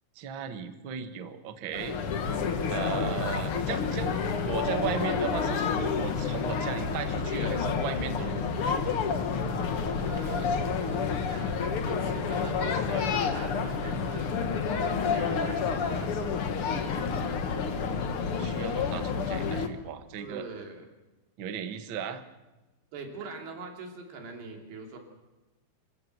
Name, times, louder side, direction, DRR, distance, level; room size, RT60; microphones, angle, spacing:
voice 1, 0.1-2.0 2.7-8.4 18.3-20.4 21.4-22.2, right 8 dB, 70° right, 8 dB, 1.1 m, -36 dB
sound 1, 1.7-19.7, left 5 dB, 60° left, 1.5 m, -29 dB
voice 2, 10.0-14.3 14.8-16.1 20.2-20.8 22.9-25.0, right 4 dB, 85° right, 2 dB, 5.1 m, -43 dB
26.0 x 14.0 x 8.0 m, 1.1 s
omnidirectional pair, 4.6 m